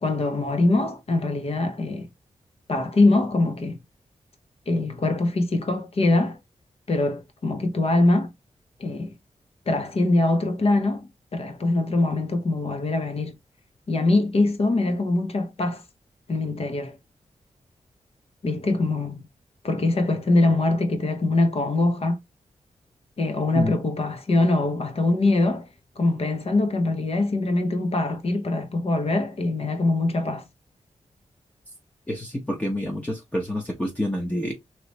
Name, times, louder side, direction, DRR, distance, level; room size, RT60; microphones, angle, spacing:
voice 1, 0.0-2.1 2.7-3.8 4.7-6.4 6.9-8.3 8.8-9.1 9.7-13.3 13.9-15.8 16.3-17.0 18.4-19.2 19.6-22.2 23.2-25.7 26.0-30.5, left 2 dB, 55° left, 0.9 m, -23 dB
voice 2, 32.1-34.5, left 1 dB, 10° left, 0.8 m, -28 dB
3.0 x 3.0 x 2.9 m
wide cardioid pair, 105°, 12 cm